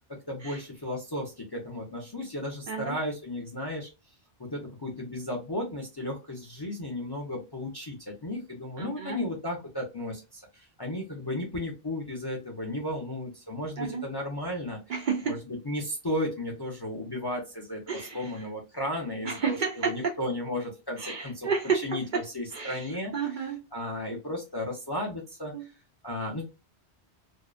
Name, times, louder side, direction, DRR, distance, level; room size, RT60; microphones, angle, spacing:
voice 1, 0.3-3.9 4.4-14.8 15.2-21.5 21.8-23.1 23.7-25.7 26.0-26.4, left 1 dB, 30° left, 0.5 m, -34 dB
voice 2, 8.8-9.2 13.8-14.0 14.9-15.4 17.9-18.3 19.2-20.2 21.0-22.2 22.5-23.6 25.5-25.7, right 5 dB, 60° right, 0.6 m, -31 dB
2.6 x 2.0 x 2.3 m
omnidirectional pair, 1.1 m